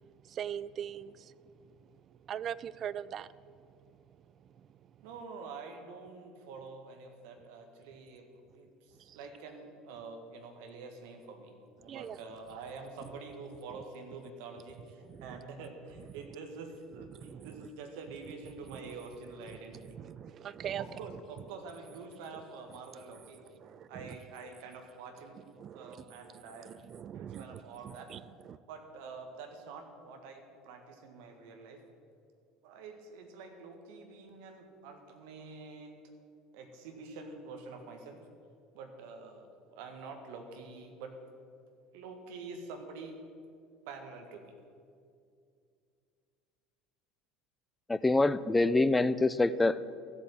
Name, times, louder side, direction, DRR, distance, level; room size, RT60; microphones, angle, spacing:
voice 1, 0.0-1.3 1.7-1.9 2.3-3.3 9.1-9.2 11.8-12.2 15.0-15.4 17.0-17.7 18.7-18.9 19.8-21.0 23.6-24.2 25.6-26.0 26.5-28.6, right 9 dB, 40° right, 17 dB, 0.4 m, -42 dB
voice 2, 5.0-20.0 20.8-23.4 23.9-25.4 25.7-26.9 27.1-28.1 28.7-31.8 32.6-36.0 36.5-38.2 38.7-41.1 41.9-43.3 43.9-44.4, right 4 dB, 60° right, 4 dB, 1.7 m, -47 dB
voice 3, 47.9-50.0, left 2 dB, 15° left, 16 dB, 0.5 m, -26 dB
14.0 x 8.3 x 7.6 m, 2.4 s
figure-of-eight pair, 65°, 0 cm